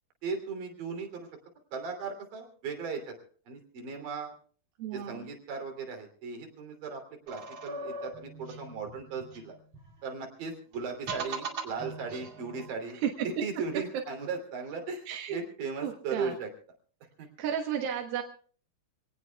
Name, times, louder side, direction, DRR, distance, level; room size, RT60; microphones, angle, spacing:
voice 1, 0.2-1.3 1.7-3.2 3.5-4.3 4.9-7.0 7.3-9.5 10.0-13.0 13.4-16.5 17.2-17.3, right 5 dB, 70° right, 3 dB, 4.5 m, -37 dB
voice 2, 4.8-5.3 12.9-13.4 15.1-15.4 15.8-16.4 17.4-18.2, right 8 dB, 90° right, 2 dB, 3.1 m, -33 dB
sound 1, 7.3-10.0 10.7-12.7, right 3 dB, 50° right, 3.2 m, -40 dB
26.5 x 18.0 x 2.3 m, 0.43 s
omnidirectional pair, 4.1 m